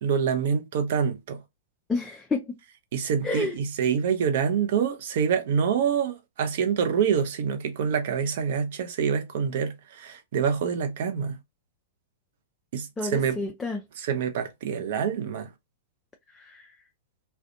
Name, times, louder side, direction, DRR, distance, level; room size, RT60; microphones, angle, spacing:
voice 1, 0.0-1.4 2.9-11.4 12.7-13.4 14.0-15.5, right 7 dB, 50° right, 0.6 m, -26 dB
voice 2, 1.9-2.4 3.2-3.5 13.0-13.8 16.3-16.7, left 3 dB, 10° left, 0.4 m, -29 dB
2.4 x 2.2 x 2.6 m
figure-of-eight pair, 105°, 0 cm